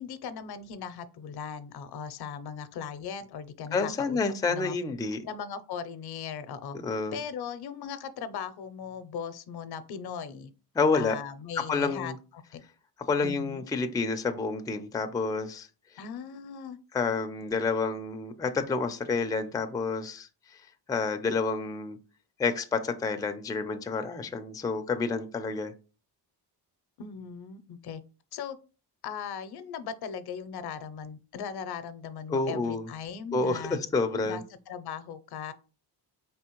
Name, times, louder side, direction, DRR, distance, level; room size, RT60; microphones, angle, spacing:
voice 1, 0.0-4.2 4.5-4.8 5.2-6.8 7.1-10.5 10.9-12.6 13.2-13.6 16.0-16.8 27.0-28.0 28.3-28.6 29.0-33.8 34.2-35.5, left 7 dB, 70° left, 0.6 m, -38 dB
voice 2, 3.7-5.2 6.8-7.2 10.8-11.2 11.6-12.2 13.1-15.7 16.9-22.0 22.4-25.7 32.3-32.9 33.3-34.4, left 4 dB, 10° left, 0.4 m, -29 dB
4.2 x 3.4 x 2.9 m
cardioid pair, 110°, 41 cm